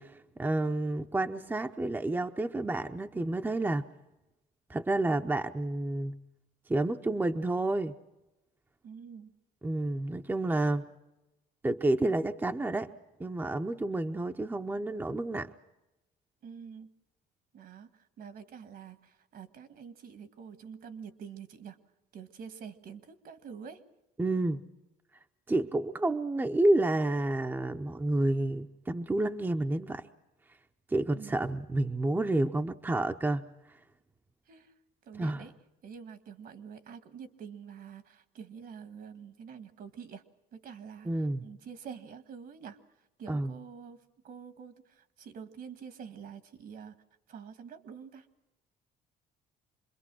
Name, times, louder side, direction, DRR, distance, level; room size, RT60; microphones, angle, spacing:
voice 1, 0.0-3.9 4.7-6.2 6.7-7.9 9.6-10.9 11.6-12.9 13.2-15.5 24.2-24.6 25.5-30.0 30.9-33.5 35.2-35.4 41.1-41.4 43.3-43.5, right 2 dB, 10° right, 6 dB, 0.8 m, -29 dB
voice 2, 8.8-9.3 16.4-17.0 17.5-21.8 22.1-23.8 31.1-31.4 34.5-34.7 35.0-35.5 35.8-40.2 40.5-41.1 41.4-42.8 43.2-46.9 47.3-48.3, right 7 dB, 60° right, 11 dB, 1.8 m, -47 dB
26.5 x 22.0 x 6.2 m, 0.99 s
cardioid pair, 110°, 17 cm